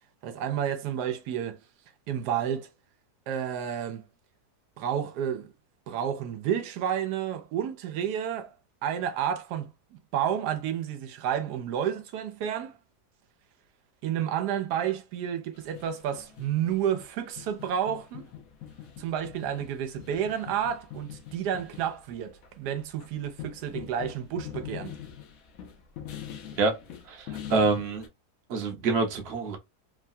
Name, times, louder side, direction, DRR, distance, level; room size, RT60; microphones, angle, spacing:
voice 1, 0.2-1.6 2.1-2.7 3.3-4.1 4.8-5.5 5.9-8.5 8.8-12.8 14.0-18.3 19.0-24.9, right 9 dB, 90° right, 1.2 m, -30 dB
sound 1, 15.5-28.1, left 10 dB, 70° left, 1.0 m, -43 dB
voice 2, 27.1-28.1 28.5-29.6, right 3 dB, 50° right, 0.9 m, -26 dB
3.1 x 2.2 x 2.6 m
omnidirectional pair, 1.7 m